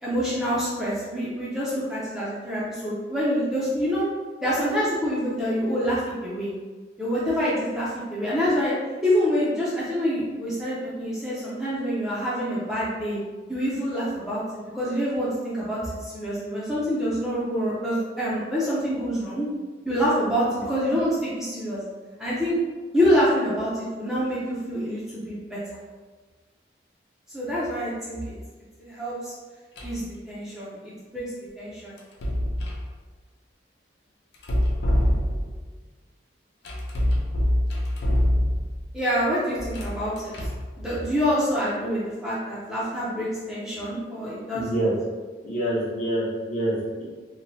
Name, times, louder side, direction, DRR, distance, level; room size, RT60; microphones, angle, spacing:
voice 1, 0.0-4.1 4.4-6.5 7.0-8.7 9.0-13.2 13.5-19.5 19.8-21.8 22.2-22.6 22.9-25.6 27.3-28.4 28.8-29.3 29.8-31.2 31.6-32.0 38.9-40.5 40.8-44.8, equal, 5° right, -10 dB, 0.5 m, -26 dB
sound 1, 29.8-30.1 32.0-32.9 34.3-35.7 36.7-38.8 39.6-40.7, equal, 70° left, 0.4 m, -25 dB
voice 2, 44.5-44.9 45.4-47.0, right 1 dB, 40° left, -7 dB, 0.8 m, -26 dB
3.0 x 2.1 x 2.7 m, 1.4 s
head